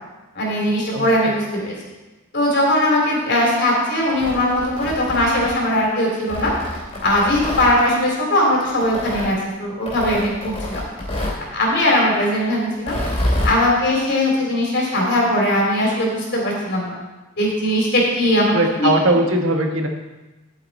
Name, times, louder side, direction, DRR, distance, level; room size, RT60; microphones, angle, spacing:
voice 1, 0.3-1.7 2.3-6.5 7.0-10.8 11.5-12.9 13.4-16.9 17.4-18.9, left 1 dB, 55° left, -2 dB, 3.4 m, -19 dB
Tearing, 4.0-5.8 6.3-7.7 8.8-9.3 9.9-11.4 12.7-13.6, left 1 dB, 30° left, 2.7 m, -26 dB
voice 2, 18.5-19.9, right 1 dB, 75° right, 3 dB, 1.4 m, -19 dB
10.5 x 8.3 x 4.3 m, 1.1 s
head